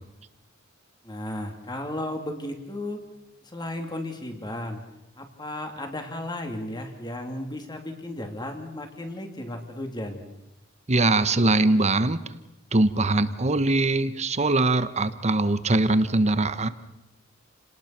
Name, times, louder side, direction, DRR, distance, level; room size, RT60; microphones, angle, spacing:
voice 1, 1.0-3.0 3.4-4.8 5.2-10.2, left 1 dB, 20° left, 4 dB, 3.0 m, -34 dB
voice 2, 10.9-12.2 12.7-16.7, right 2 dB, 35° right, 12 dB, 1.1 m, -22 dB
30.0 x 19.0 x 6.0 m, 0.94 s
head